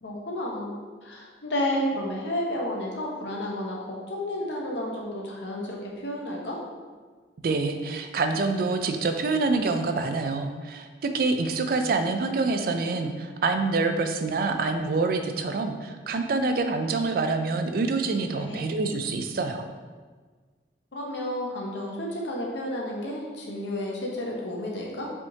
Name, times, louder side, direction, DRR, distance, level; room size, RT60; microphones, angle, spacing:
voice 1, 0.0-6.6 18.3-18.6 20.9-25.1, left 1 dB, 85° left, -2 dB, 0.9 m, -31 dB
voice 2, 7.4-19.6, right 3 dB, 55° right, 6 dB, 0.4 m, -26 dB
5.1 x 3.5 x 2.8 m, 1.5 s
head